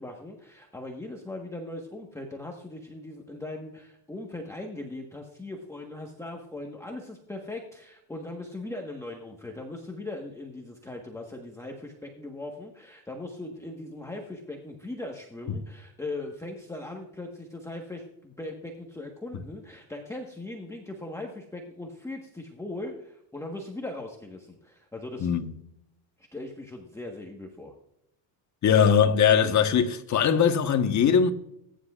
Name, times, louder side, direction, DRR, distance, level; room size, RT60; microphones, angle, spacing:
voice 1, 0.0-25.3 26.3-27.7, left 2 dB, 5° left, 1.3 m, -39 dB
voice 2, 28.6-31.3, left 7 dB, 35° left, 1.3 m, -21 dB
20.5 x 10.0 x 2.5 m
cardioid pair, 125°, 47 cm